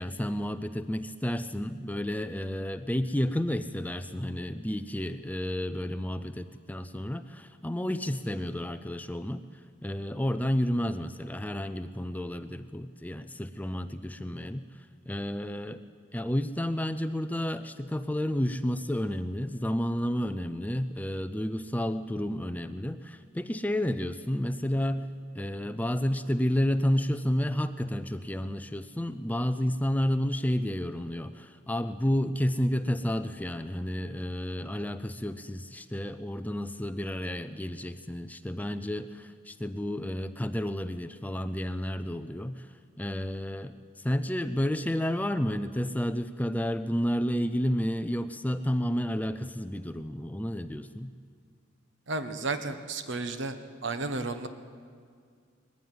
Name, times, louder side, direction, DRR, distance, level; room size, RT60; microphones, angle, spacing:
voice 1, 0.0-9.4 9.8-14.7 15.1-15.8 16.1-25.1 25.3-51.1, equal, 10° left, 11 dB, 0.5 m, -31 dB
voice 2, 52.1-53.6 53.8-54.5, right 3 dB, 60° right, 9 dB, 1.2 m, -32 dB
21.0 x 15.0 x 9.5 m, 2.1 s
head